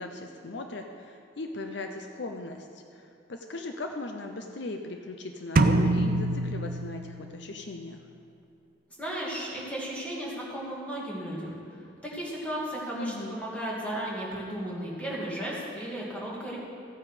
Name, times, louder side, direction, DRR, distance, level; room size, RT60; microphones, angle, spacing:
voice 1, 0.0-8.0 12.9-13.4, left 2 dB, 65° left, 4 dB, 0.7 m, -38 dB
sound 1, 5.6-7.4, right 2 dB, 45° right, 0.5 m, -25 dB
voice 2, 9.0-11.6 12.0-16.6, right 1 dB, 5° left, -5 dB, 2.3 m, -35 dB
14.5 x 8.6 x 5.0 m, 2.5 s
head